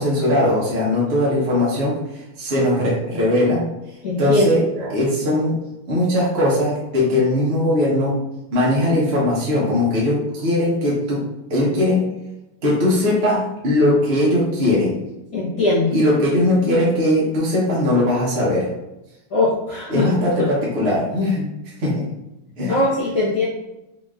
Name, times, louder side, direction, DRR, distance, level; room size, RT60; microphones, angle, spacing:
voice 1, 0.0-3.7 4.2-5.6 5.9-8.2 8.5-12.0 12.6-15.0 15.9-18.7 19.9-21.5 21.8-22.1 22.6-22.8, left 1 dB, 45° right, -6 dB, 0.8 m, -19 dB
voice 2, 4.0-4.5 15.3-15.9 19.3-20.1 20.4-20.5 22.7-23.4, left 2 dB, 60° left, -8 dB, 1.4 m, -20 dB
3.9 x 3.0 x 2.4 m, 0.92 s
omnidirectional pair, 2.2 m